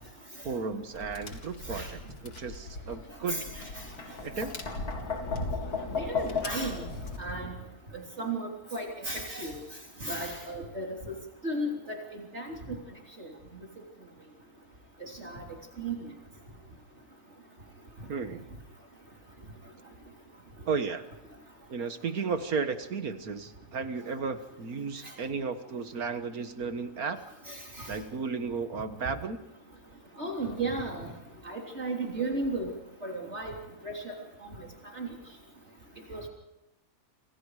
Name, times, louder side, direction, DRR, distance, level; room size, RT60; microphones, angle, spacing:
voice 1, 0.4-3.4 4.2-4.6 18.1-18.4 20.7-21.0 21.7-27.2 27.9-29.4, right 5 dB, 70° right, 9 dB, 1.9 m, -34 dB
Tap, 0.9-7.2, left 4 dB, 90° left, 3.1 m, -36 dB
voice 2, 3.3-3.9 4.3-4.4 5.9-6.8 7.2-7.6 8.2-9.6 10.0-11.2 11.4-12.8 13.2-13.3 15.0-15.4 15.8-16.1 27.5-27.9 30.2-31.1 31.4-32.7 33.0-33.6 33.8-34.1 34.4-34.7 34.9-35.1 36.1-36.3, right 2 dB, 45° right, 0 dB, 3.8 m, -35 dB
28.0 x 27.5 x 4.9 m, 0.93 s
omnidirectional pair, 1.6 m